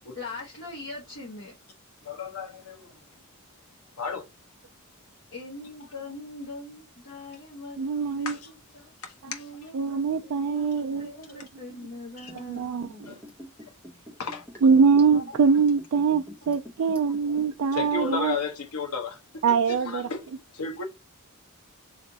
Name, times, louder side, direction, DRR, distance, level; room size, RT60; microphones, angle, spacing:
voice 1, 0.1-1.5 5.3-8.9 9.3-13.2 15.1-15.2, left 2 dB, 60° left, 1.1 m, -42 dB
voice 2, 2.1-2.9 4.0-4.2 8.2-8.4 9.0-9.4 12.2-12.3 13.1-13.2 14.2-14.4 17.7-19.2 19.5-20.3 20.5-20.8, left 5 dB, 85° left, 0.9 m, -33 dB
voice 3, 7.8-8.4 9.2-9.3 9.7-11.1 12.3-13.1 14.6-18.4 19.4-20.1, right 5 dB, 65° right, 0.4 m, -23 dB
Liquid, 12.2-18.4 18.7-18.8, equal, 10° left, 1.0 m, -45 dB
3.2 x 2.5 x 3.9 m
head